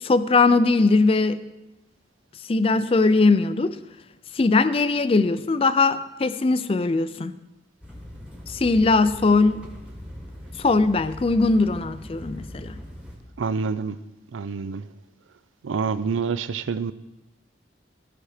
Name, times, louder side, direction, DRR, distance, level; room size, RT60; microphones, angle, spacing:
voice 1, 0.0-1.4 2.5-3.8 4.3-7.3 8.5-9.6 10.6-12.7, left 3 dB, 30° left, 13 dB, 0.4 m, -20 dB
sound 1, 7.8-13.2, equal, 5° right, 1.2 m, -40 dB
voice 2, 13.4-14.0 14.3-14.8 15.6-16.9, right 5 dB, 90° right, 15 dB, 0.4 m, -27 dB
14.0 x 6.0 x 4.9 m, 1.0 s
head